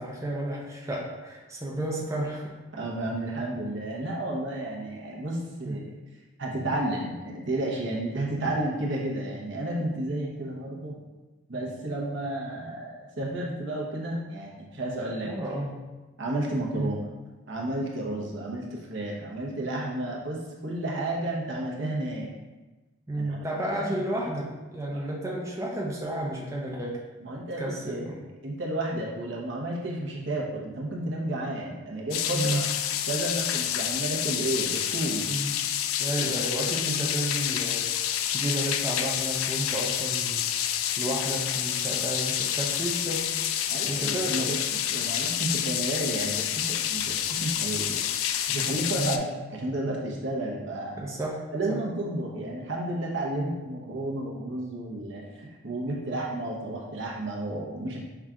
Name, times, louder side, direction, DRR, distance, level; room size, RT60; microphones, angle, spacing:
voice 1, 0.0-2.5 5.6-5.8 15.2-15.8 16.7-16.9 23.1-27.0 27.6-28.1 32.3-32.6 35.3-35.6 36.0-38.1 38.3-40.5 41.0-43.3 43.9-44.5 49.0-49.2 51.0-51.4 51.7-51.8 53.3-53.5, right 1 dB, 15° right, -3 dB, 0.5 m, -32 dB
voice 2, 2.7-6.0 6.4-11.0 11.5-15.3 16.2-17.0 17.5-22.3 23.2-23.4 23.7-24.0 24.9-25.0 25.3-25.4 27.2-32.7 33.0-35.4 36.7-36.8 43.7-51.1 51.5-58.0, right 1 dB, 60° right, -2 dB, 0.8 m, -32 dB
sound 1, 32.1-49.2, left 10 dB, 85° left, 0.3 m, -28 dB
5.7 x 2.4 x 3.6 m, 1.2 s
head